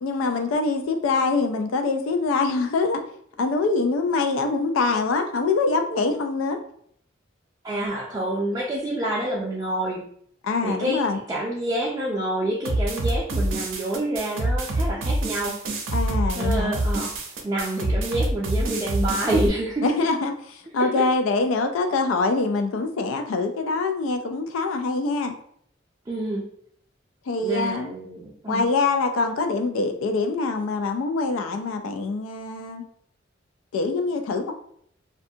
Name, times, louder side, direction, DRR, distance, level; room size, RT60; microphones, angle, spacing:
voice 1, 0.0-3.0 3.4-6.6 10.4-11.2 15.9-16.8 19.8-20.3 20.7-25.3 27.3-27.9 28.5-32.8 33.7-34.5, left 3 dB, 85° left, 5 dB, 0.3 m, -24 dB
voice 2, 7.6-10.0 10.6-15.6 16.3-17.1 17.4-19.9 20.8-21.1 26.1-26.5 27.4-28.7, right 1 dB, 20° right, -6 dB, 0.4 m, -27 dB
sound 1, 12.6-19.5, right 1 dB, 85° right, 0.5 m, -26 dB
2.5 x 2.2 x 2.6 m, 0.65 s
head